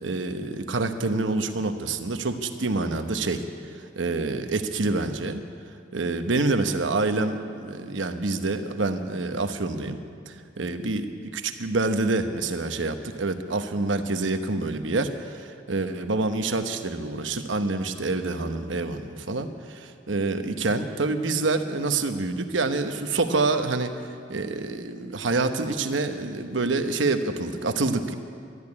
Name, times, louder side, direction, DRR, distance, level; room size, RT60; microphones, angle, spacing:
voice 1, 0.0-5.4 5.9-10.0 10.3-23.9 24.3-28.1, right 3 dB, 80° right, 8 dB, 1.0 m, -27 dB
12.5 x 11.0 x 9.7 m, 2.3 s
head